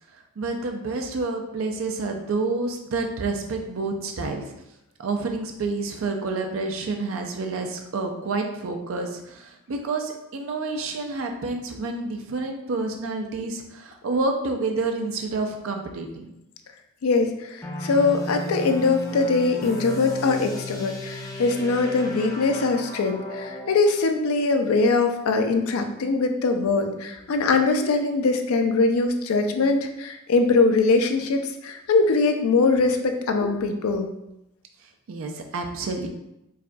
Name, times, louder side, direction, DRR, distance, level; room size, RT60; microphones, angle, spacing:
voice 1, 0.4-4.4 5.0-16.3 33.4-33.5 35.1-36.1, right 3 dB, 65° right, 3 dB, 0.4 m, -29 dB
voice 2, 17.0-34.1, left 3 dB, 80° left, 6 dB, 0.4 m, -22 dB
sound 1, 17.6-23.8, left 1 dB, 15° left, 0.4 m, -35 dB
4.7 x 2.2 x 2.6 m, 0.86 s
head